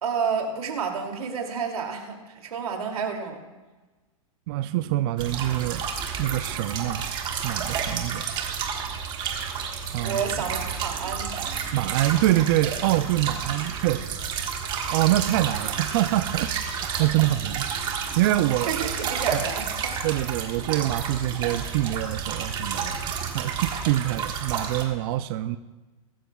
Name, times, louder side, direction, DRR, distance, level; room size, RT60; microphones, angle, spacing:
voice 1, 0.0-3.4 10.0-11.3 17.2-17.3 18.7-20.0, right 6 dB, 85° right, 2 dB, 2.7 m, -30 dB
voice 2, 4.5-5.8 6.2-7.0 7.4-8.3 9.9-10.2 11.7-14.2 14.9-17.6 18.2-18.7 19.3-19.4 20.0-23.0 23.3-25.6, right 14 dB, 40° right, 10 dB, 0.5 m, -25 dB
sound 1, 5.2-24.8, right 7 dB, 25° right, 1.5 m, -31 dB
23.0 x 12.5 x 2.3 m, 1.2 s
hypercardioid pair, 145°, 18 cm